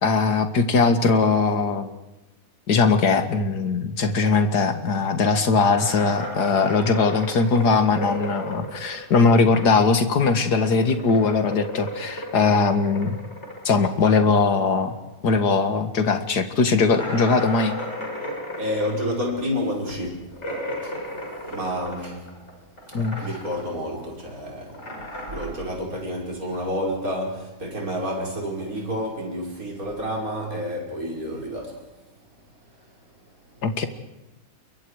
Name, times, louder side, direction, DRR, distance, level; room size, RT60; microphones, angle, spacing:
voice 1, 0.0-1.9 2.7-13.2 13.6-14.9 15.2-17.7 22.9-23.2 33.6-33.9, left 4 dB, 75° left, 2.4 m, -20 dB
sound 1, 5.7-10.0 10.2-15.3 15.6-15.7 16.1-16.2 16.9-22.5 22.8-23.7 24.0-25.5, equal, 40° left, 6.6 m, -35 dB
voice 2, 18.6-20.2 20.8-22.3 22.9-24.8 25.3-31.8, equal, 60° right, 5.8 m, -29 dB
28.5 x 23.5 x 4.9 m
omnidirectional pair, 1.7 m